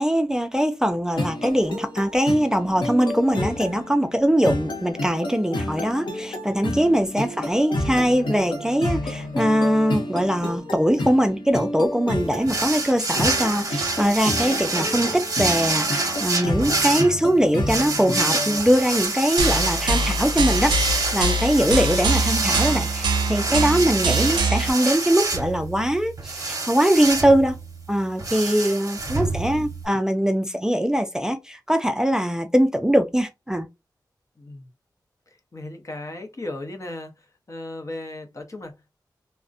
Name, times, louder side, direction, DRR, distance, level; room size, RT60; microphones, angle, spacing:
voice 1, 0.0-27.6 27.9-33.7, equal, 10° right, 0.4 m, -22 dB
sound 1, 1.2-18.6, left 1 dB, 85° left, 0.7 m, -30 dB
sound 2, 12.5-29.9, right 3 dB, 50° right, 0.7 m, -27 dB
sound 3, 19.4-24.7, right 2 dB, 85° right, 0.4 m, -23 dB
voice 2, 29.0-29.6 34.4-34.7 35.3-38.9, left 2 dB, 45° left, 0.6 m, -37 dB
2.4 x 2.0 x 2.4 m
cardioid pair, 50°, 8 cm